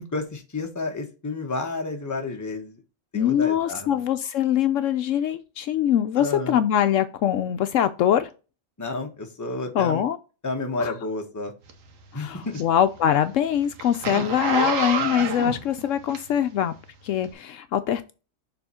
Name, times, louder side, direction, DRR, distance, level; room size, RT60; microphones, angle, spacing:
voice 1, 0.0-2.8 3.1-4.0 6.2-6.6 8.8-10.0 10.4-11.5 12.1-12.6, left 3 dB, 15° left, 3 dB, 0.9 m, -31 dB
voice 2, 3.1-8.3 9.7-10.2 10.8-10.9 12.1-16.7 17.0-18.0, left 10 dB, 70° left, 10 dB, 0.9 m, -23 dB
Zipper (clothing), 11.7-16.6 17.2-17.3, right 5 dB, 70° right, 1.3 m, -29 dB
6.8 x 3.6 x 4.2 m, 0.32 s
omnidirectional pair, 1.4 m